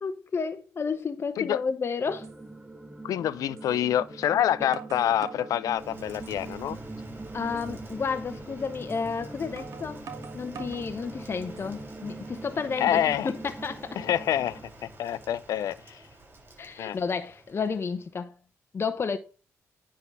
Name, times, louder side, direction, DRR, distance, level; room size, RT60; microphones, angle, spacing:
voice 1, 0.0-2.3 4.6-4.7 7.3-10.1 10.3-13.0 13.2-14.0 16.6-18.3 18.7-19.2, left 5 dB, 45° left, 0.8 m, -31 dB
sound 1, 2.0-14.6, right 2 dB, 10° right, 1.1 m, -43 dB
sound 2, 2.2-2.4 3.6-3.7 4.2-5.5 6.1-6.6 7.0-7.1 7.6-7.7 8.9-9.0 9.6-10.9 11.4-11.9, right 7 dB, 70° right, 1.4 m, -45 dB
voice 2, 3.0-6.8 12.8-13.3 14.0-16.0 16.8-17.0, left 11 dB, 85° left, 0.5 m, -27 dB
Rain, 5.8-18.2, right 2 dB, 40° right, 3.5 m, -47 dB
9.8 x 3.8 x 6.0 m
cardioid pair, 75°, 6 cm